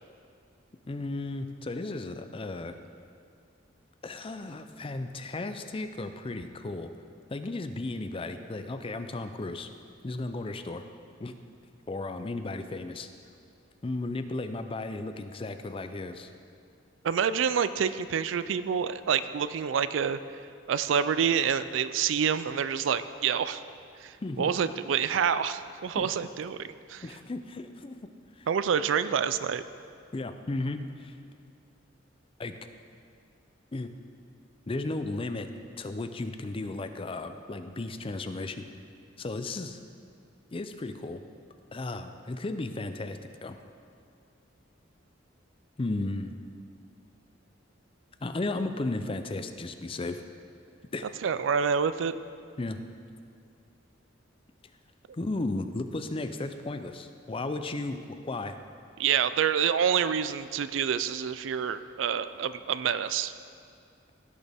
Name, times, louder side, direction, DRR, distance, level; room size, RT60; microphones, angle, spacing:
voice 1, 0.9-2.7 4.0-6.9 7.3-9.7 10.0-10.8 11.2-11.4 11.9-13.1 13.8-16.3 24.2-24.5 26.0-26.1 27.0-28.1 28.4-28.5 30.1-31.2 32.4-32.6 33.7-33.9 34.7-35.5 35.8-38.7 39.2-39.8 40.5-41.2 41.7-43.6 45.8-46.3 48.2-50.2 50.9-51.1 52.6-52.8 55.1-58.6, left 2 dB, 30° left, 8 dB, 0.5 m, -34 dB
voice 2, 17.0-20.2 20.7-23.6 24.0-27.0 28.5-29.6 51.2-52.2 59.0-63.3, right 7 dB, 75° right, 13 dB, 0.4 m, -27 dB
16.0 x 6.4 x 3.5 m, 2.4 s
head